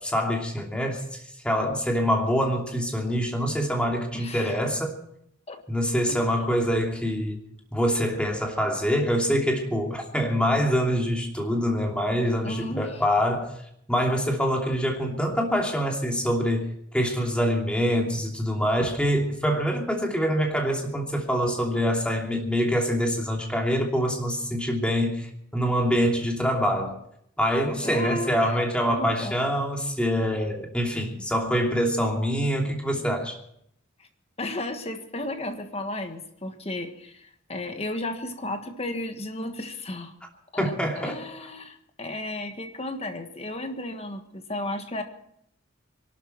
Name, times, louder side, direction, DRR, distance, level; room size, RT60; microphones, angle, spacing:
voice 1, 0.0-4.9 5.7-7.4 7.7-13.5 13.9-16.7 16.9-27.0 27.4-33.4 40.6-41.2, equal, 5° left, 1 dB, 2.8 m, -25 dB
voice 2, 4.1-4.6 5.5-5.6 6.1-6.4 12.4-13.0 27.8-28.6 28.9-29.4 34.0-34.1 34.4-40.1 40.5-45.0, left 1 dB, 30° left, 7 dB, 1.5 m, -34 dB
25.0 x 12.0 x 4.6 m, 0.70 s
head